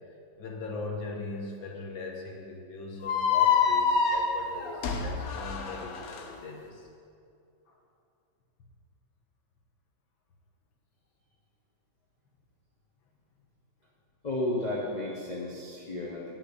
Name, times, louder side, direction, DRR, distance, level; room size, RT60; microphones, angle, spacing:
voice 1, 0.4-6.9 7.7-7.8, left 3 dB, 75° left, 1 dB, 2.1 m, -40 dB
sound 1, 3.0-6.2, left 6 dB, 55° left, 1.1 m, -26 dB
voice 2, 14.2-16.4, left 1 dB, 25° left, -4 dB, 1.0 m, -33 dB
9.9 x 5.8 x 8.3 m, 2.4 s
omnidirectional pair, 2.2 m